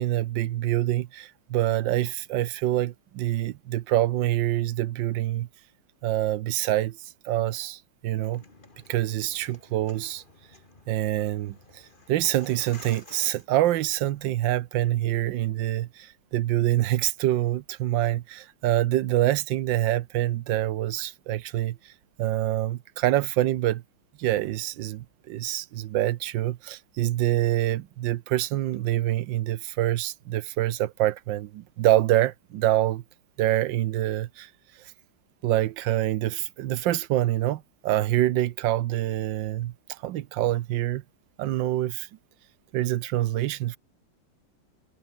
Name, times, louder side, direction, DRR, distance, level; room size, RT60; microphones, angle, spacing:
voice 1, 0.0-5.5 6.0-7.0 7.2-8.4 8.9-10.2 10.9-11.8 12.1-21.8 22.2-23.8 24.2-33.0 33.4-34.5 35.4-41.0 41.4-42.1 42.7-43.8, right 14 dB, 70° right, 1.3 m, -26 dB
sound 1, 8.1-14.3, left 3 dB, 25° left, 2.5 m, -52 dB
omnidirectional pair, 2.3 m